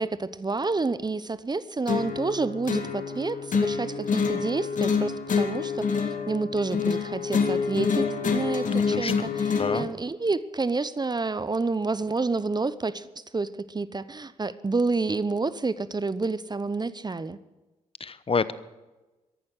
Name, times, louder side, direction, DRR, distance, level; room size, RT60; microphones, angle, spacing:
voice 1, 0.0-13.1 13.3-17.4, right 3 dB, 25° right, 16 dB, 0.9 m, -29 dB
sound 1, 1.9-9.9, left 5 dB, 55° left, 2.2 m, -27 dB
voice 2, 8.9-9.3 9.6-9.9 18.0-18.5, left 5 dB, 35° left, 15 dB, 1.0 m, -28 dB
14.5 x 11.0 x 7.9 m, 1.1 s
hypercardioid pair, 40°, 16 cm